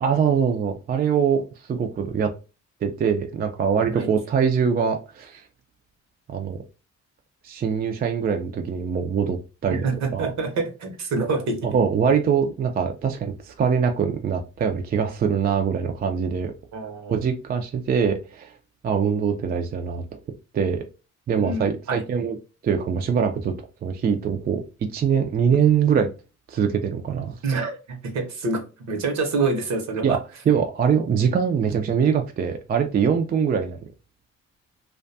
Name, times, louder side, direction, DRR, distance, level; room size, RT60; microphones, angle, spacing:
voice 1, 0.0-2.3 2.8-5.4 6.3-6.6 7.4-10.3 11.2-11.3 11.6-16.5 17.1-18.5 18.8-20.0 20.5-20.8 21.3-22.4 22.6-23.5 23.8-24.6 24.9-26.1 26.5-27.3 30.0-30.2 30.5-33.8, right 7 dB, 30° right, 0.4 m, -23 dB
voice 2, 9.7-11.6 16.7-17.2 21.4-22.0 27.4-30.2, right 3 dB, 65° right, 0.8 m, -27 dB
2.5 x 2.2 x 2.5 m
cardioid pair, 90°, 30 cm